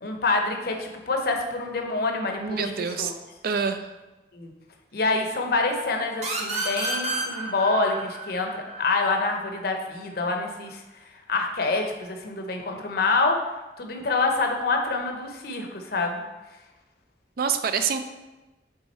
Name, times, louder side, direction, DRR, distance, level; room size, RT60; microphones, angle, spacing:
voice 1, 0.0-2.7 3.0-3.1 4.3-4.5 4.9-10.8 11.3-13.4 13.8-16.2, left 3 dB, 60° left, 3 dB, 0.8 m, -26 dB
voice 2, 2.4-3.1 3.4-3.9 17.4-18.0, right 6 dB, 55° right, 8 dB, 0.4 m, -26 dB
sound 1, 6.2-9.6, right 2 dB, 40° right, 1.0 m, -31 dB
6.2 x 3.6 x 4.3 m, 1.1 s
head